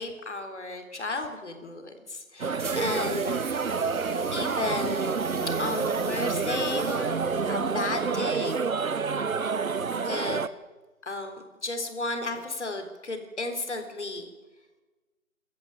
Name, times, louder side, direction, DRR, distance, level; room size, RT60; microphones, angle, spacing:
voice 1, 0.0-3.4 4.3-5.1 5.5-7.1 7.5-8.5 10.0-10.4 11.1-14.3, left 2 dB, 55° left, 6 dB, 3.9 m, -33 dB
sound 1, 2.4-10.5, right 5 dB, 75° right, 1.2 m, -28 dB
sound 2, 2.6-8.2, right 3 dB, 60° right, 3.0 m, -42 dB
27.5 x 14.0 x 9.0 m, 1.2 s
figure-of-eight pair, 180°, 42 cm